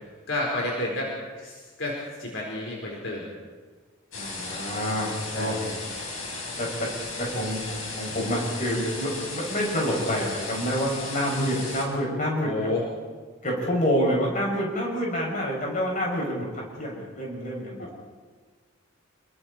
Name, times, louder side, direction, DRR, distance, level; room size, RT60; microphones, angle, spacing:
voice 1, 0.3-1.1 1.4-3.2 5.3-5.7 12.4-12.8, left 1 dB, 65° left, -3 dB, 4.6 m, -30 dB
sound 1, 4.1-11.9, left 3 dB, 90° left, 5.6 m, -35 dB
voice 2, 4.1-5.6 6.6-6.9 7.2-12.5 13.4-17.9, equal, 40° left, -2 dB, 7.1 m, -27 dB
30.0 x 22.5 x 4.5 m, 1.4 s
head